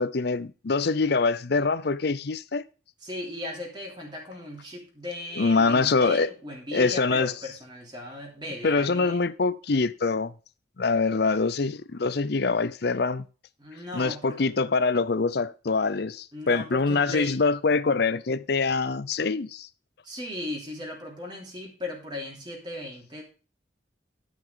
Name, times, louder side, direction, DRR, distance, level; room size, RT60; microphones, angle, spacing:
voice 1, 0.0-2.6 5.4-6.3 6.7-7.3 8.6-10.3 10.8-13.3 13.9-19.7, left 4 dB, 55° left, 0.6 m, -24 dB
voice 2, 3.0-9.2 13.6-14.4 16.3-17.4 20.0-23.2, left 1 dB, 25° right, 3.3 m, -37 dB
12.5 x 5.9 x 5.0 m
head